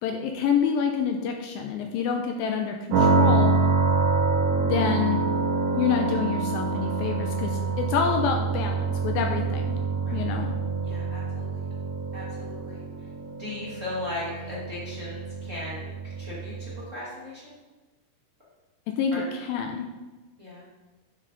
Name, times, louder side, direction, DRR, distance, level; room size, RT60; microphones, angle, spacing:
voice 1, 0.0-3.6 4.5-5.2 5.7-9.8 10.1-10.5 19.0-19.9, left 6 dB, 80° left, 3 dB, 2.3 m, -27 dB
sound 1, 2.9-16.8, right 4 dB, 60° right, 3.2 m, -26 dB
voice 2, 7.5-7.8 10.0-10.2 10.8-11.7 12.1-12.8 13.4-17.5 19.1-19.2 20.4-20.7, left 2 dB, 25° right, -8 dB, 1.9 m, -38 dB
9.9 x 7.4 x 4.0 m, 1.2 s
omnidirectional pair, 4.5 m